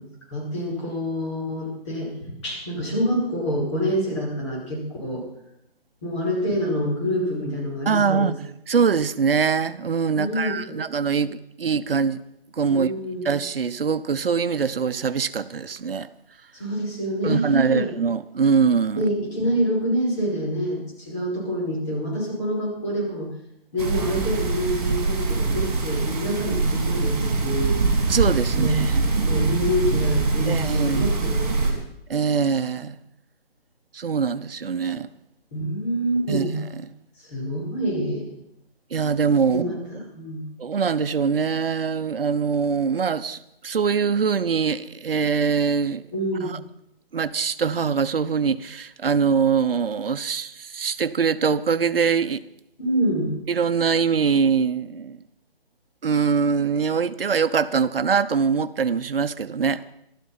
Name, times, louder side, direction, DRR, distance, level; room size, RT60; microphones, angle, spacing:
voice 1, 0.0-5.2 6.0-8.4 10.1-10.9 12.6-13.3 16.5-17.9 19.0-23.3 23.7-27.7 28.5-28.8 29.2-31.8 35.5-36.6 37.2-38.3 39.5-40.4 46.1-46.5 52.8-53.4, equal, 30° left, 5.3 m, -26 dB
voice 2, 7.9-8.4 8.7-12.2 12.5-12.9 13.2-16.1 17.2-19.1 28.1-29.1 30.5-31.1 32.1-33.0 33.9-35.1 36.3-36.5 38.9-39.8 40.6-46.0 46.4-46.6 47.1-52.4 53.5-55.2 56.0-59.8, right 6 dB, 65° right, 0.9 m, -23 dB
sound 1, 23.8-31.7, right 3 dB, 40° right, 3.5 m, -23 dB
13.0 x 12.5 x 5.6 m
hypercardioid pair, 170°, 30 cm